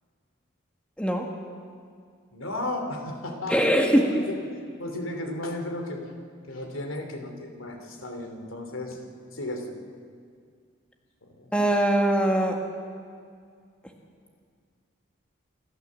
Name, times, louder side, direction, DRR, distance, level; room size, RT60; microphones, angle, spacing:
voice 1, 1.0-1.3 3.5-4.2 11.5-12.6, right 1 dB, 5° left, 2 dB, 1.7 m, -22 dB
voice 2, 2.3-3.7 4.0-4.4 4.8-6.1 6.5-9.0 9.3-9.8 11.2-11.5, left 1 dB, 80° left, 4 dB, 2.9 m, -34 dB
27.5 x 13.0 x 7.5 m, 2.2 s
head